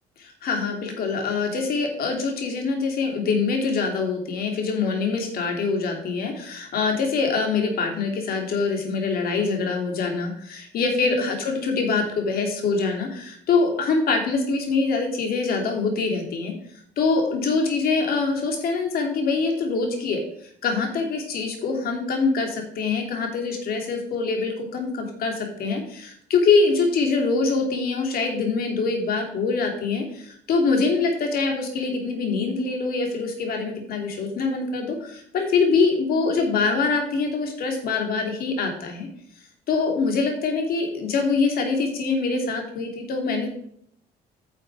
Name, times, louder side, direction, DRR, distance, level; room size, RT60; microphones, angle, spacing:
voice 1, 0.2-16.5 17.0-20.2 20.6-39.1 39.7-43.5, left 4 dB, 60° left, 3 dB, 3.0 m, -24 dB
10.0 x 6.9 x 4.9 m, 0.66 s
cardioid pair, 110°, 17 cm